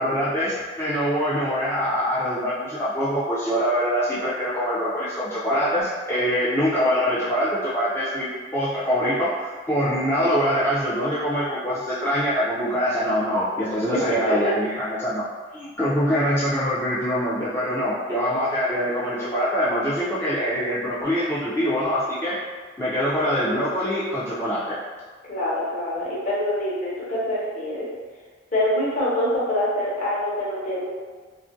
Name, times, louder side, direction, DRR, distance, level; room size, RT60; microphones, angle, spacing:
voice 1, 0.0-15.2 15.5-22.4 22.8-24.8, equal, 15° left, -11 dB, 0.4 m, -24 dB
voice 2, 13.9-14.8 25.3-27.9 28.5-30.9, left 1 dB, 45° left, -7 dB, 0.8 m, -25 dB
2.5 x 2.4 x 2.5 m, 1.5 s
head